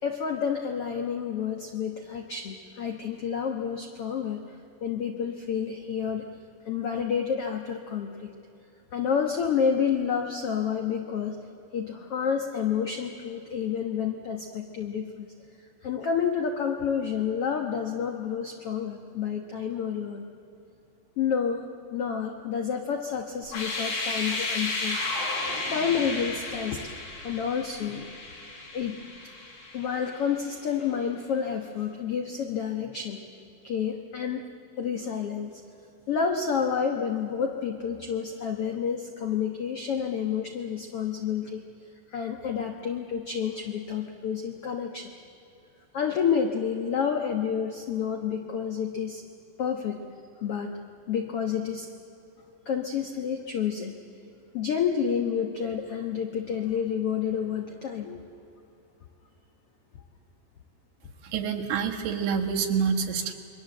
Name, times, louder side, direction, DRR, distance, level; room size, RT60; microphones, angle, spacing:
voice 1, 0.0-4.4 4.8-6.3 6.6-8.3 8.9-11.4 11.7-15.3 15.8-20.2 21.2-25.0 25.7-26.9 27.2-28.1 28.7-29.0 29.7-33.2 33.6-34.4 34.8-35.6 36.1-41.6 42.1-45.1 45.9-49.2 49.6-50.0 50.4-50.7 51.1-51.9 52.6-54.0 54.5-58.2, left 7 dB, 85° left, 3 dB, 1.2 m, -29 dB
sound 1, 23.4-30.3, left 2 dB, 70° left, 6.1 m, -33 dB
voice 2, 61.2-63.3, right 6 dB, 80° right, 2 dB, 3.7 m, -27 dB
29.0 x 22.5 x 7.8 m, 2.8 s
omnidirectional pair, 4.6 m